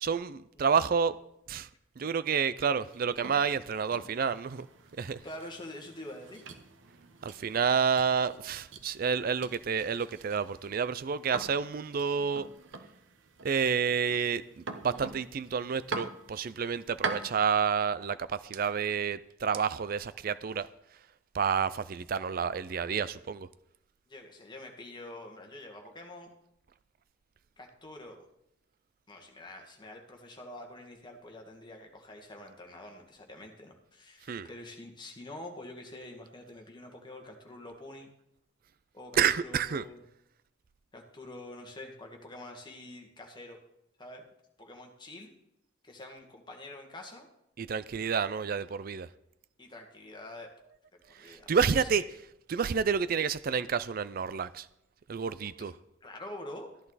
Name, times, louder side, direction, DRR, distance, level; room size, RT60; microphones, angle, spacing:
voice 1, 0.0-1.2 1.5-1.7 2.0-4.7 5.0-5.2 7.2-12.5 13.4-20.7 21.3-23.5 34.3-34.5 39.2-39.8 47.6-49.1 51.2-52.0 52.5-54.7 55.1-55.7, right 6 dB, 50° right, 0.4 m, -29 dB
sound 1, 2.8-17.4, right 4 dB, 85° right, 1.1 m, -44 dB
voice 2, 5.2-6.5 24.1-26.3 27.6-28.2 29.1-38.1 38.9-40.0 40.9-43.6 44.0-44.3 44.6-45.3 45.8-47.3 49.6-50.6 51.1-52.0 55.6-55.7 56.0-56.7, left 1 dB, 25° left, 2.0 m, -46 dB
14.0 x 11.0 x 4.1 m
head